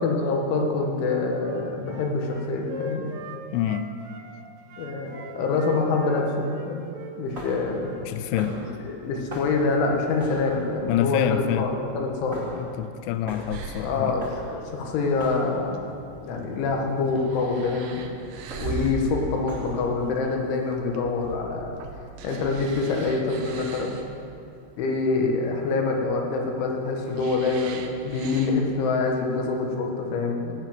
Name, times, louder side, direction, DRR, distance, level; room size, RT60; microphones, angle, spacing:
voice 1, 0.0-3.0 4.8-6.8 7.2-7.9 8.5-12.5 13.8-15.9 16.2-18.1 18.6-21.8 22.2-23.9 24.8-30.5, left 3 dB, 70° left, 1 dB, 3.7 m, -26 dB
Wind instrument woodwind instrument, 1.0-4.3 4.6-8.0, right 1 dB, 65° right, 3.8 m, -40 dB
voice 2, 3.5-3.9 8.0-8.6 10.9-11.7 12.5-14.2, left 11 dB, 90° left, 11 dB, 2.7 m, -26 dB
sound 1, 7.2-20.1, equal, 25° right, 2.0 m, -44 dB
sound 2, 13.5-29.8, right 4 dB, 85° right, 2.2 m, -39 dB
17.0 x 9.8 x 6.0 m, 2.5 s
omnidirectional pair, 6.0 m